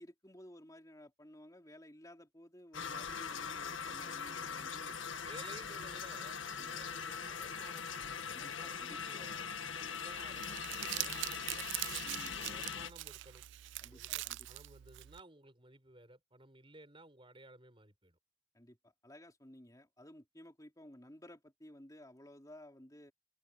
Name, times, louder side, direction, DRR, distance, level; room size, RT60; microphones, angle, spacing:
voice 1, 0.0-5.0 6.6-6.8 8.3-9.3 12.0-12.4 13.8-14.5 18.5-23.1, left 1 dB, 20° left, 3.5 m, -56 dB
sound 1, 2.7-12.9, left 6 dB, 75° left, 1.9 m, -41 dB
voice 2, 5.1-7.9 8.2-11.7 12.3-13.5 13.9-18.2, right 2 dB, 25° right, 5.4 m, -56 dB
Crumpling crinkling, 10.1-15.2, right 17 dB, 65° right, 0.3 m, -42 dB
head